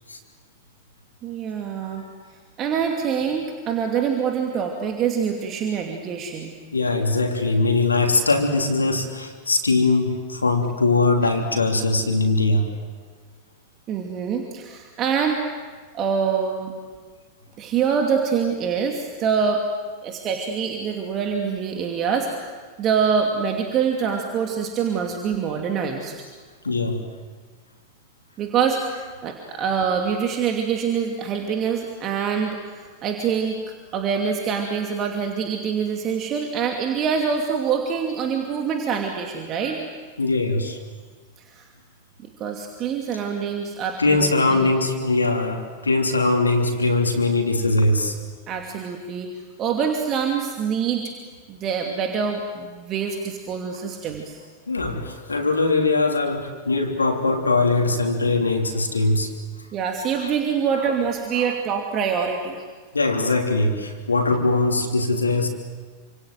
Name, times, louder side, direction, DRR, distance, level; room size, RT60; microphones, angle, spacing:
voice 1, 1.2-2.0 2.6-6.5 13.9-15.4 15.9-16.7 17.6-19.6 20.0-22.5 22.8-26.2 28.4-33.6 33.9-39.8 41.4-41.7 42.4-44.7 48.5-49.3 49.6-51.1 51.5-54.4 59.7-62.6, right 6 dB, 35° right, 2 dB, 2.7 m, -25 dB
voice 2, 6.7-12.7 21.2-21.3 26.6-27.0 29.0-29.1 29.6-29.7 39.6-39.7 40.2-40.8 44.0-48.2 54.7-59.3 60.1-60.3 60.7-60.9 61.3-61.5 62.6-62.7 62.9-65.5, left 3 dB, 80° left, 3 dB, 3.3 m, -21 dB
28.5 x 27.0 x 7.8 m, 1.5 s
figure-of-eight pair, 90°, 0 cm